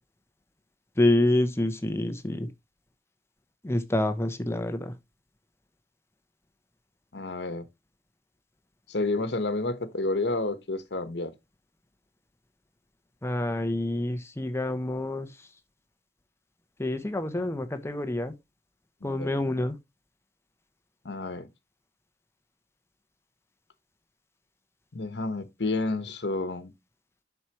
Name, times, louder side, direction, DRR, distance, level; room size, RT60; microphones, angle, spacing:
voice 1, 1.0-2.5 3.6-4.9 13.2-15.3 16.8-18.3 19.0-19.8, left 1 dB, 15° left, 0.7 m, -27 dB
voice 2, 7.1-7.6 8.9-11.3 19.0-19.5 21.0-21.5 24.9-26.7, left 2 dB, 75° left, 1.1 m, -30 dB
8.0 x 5.8 x 2.9 m
head